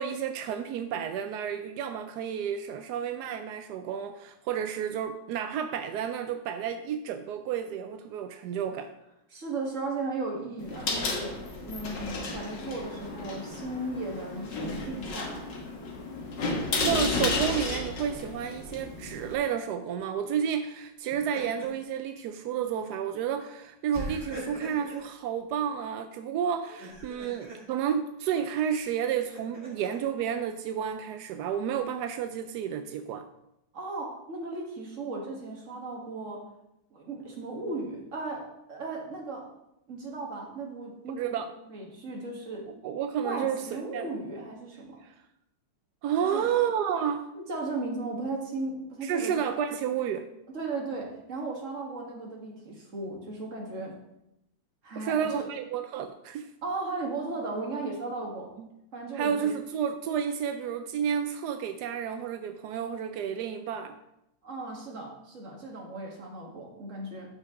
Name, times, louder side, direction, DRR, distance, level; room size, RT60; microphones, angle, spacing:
voice 1, 0.0-8.9 16.8-33.2 41.1-41.5 42.8-43.7 43.9-44.1 46.0-47.3 49.0-50.3 55.0-56.5 58.6-58.7 59.1-64.0, right 8 dB, 75° right, 0.9 m, -31 dB
voice 2, 9.3-11.4 11.7-15.6 33.7-36.4 36.9-39.4 39.9-42.7 43.2-45.0 46.2-46.5 47.3-49.3 50.5-54.0 54.8-55.5 56.6-58.5 58.9-59.5 64.4-67.3, right 3 dB, 40° right, 1.9 m, -36 dB
sound 1, 10.6-19.3, left 3 dB, 60° left, 1.8 m, -33 dB
Laughter, 18.1-18.6 20.9-21.9 22.3-22.4 23.9-25.1 26.6-27.6 28.7-30.0, right 1 dB, 20° right, 2.6 m, -42 dB
12.5 x 5.1 x 3.7 m
omnidirectional pair, 2.2 m